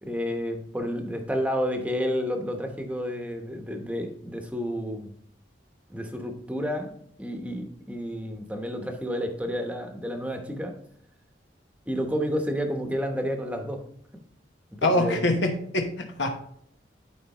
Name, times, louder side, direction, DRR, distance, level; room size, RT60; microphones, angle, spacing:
voice 1, 0.0-5.1 5.9-10.7 11.9-13.8 14.8-15.2, equal, 5° right, 4 dB, 0.9 m, -30 dB
voice 2, 14.8-16.4, left 1 dB, 80° left, 3 dB, 1.0 m, -25 dB
11.5 x 4.7 x 3.0 m, 0.65 s
head